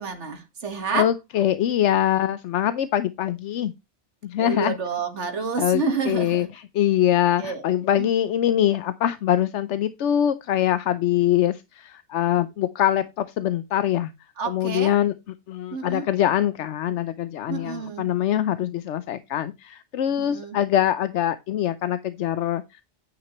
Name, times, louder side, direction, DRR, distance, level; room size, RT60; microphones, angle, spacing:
voice 1, 0.0-1.1 4.4-6.5 7.4-7.6 8.0-8.1 14.4-14.9 15.7-16.1 17.5-18.0 20.2-20.6, right 5 dB, 85° right, 1.9 m, -29 dB
voice 2, 0.9-3.7 4.2-4.7 5.6-14.1 14.5-15.1 15.5-22.8, left 11 dB, 90° left, 1.0 m, -23 dB
9.6 x 9.2 x 3.0 m
omnidirectional pair, 1.2 m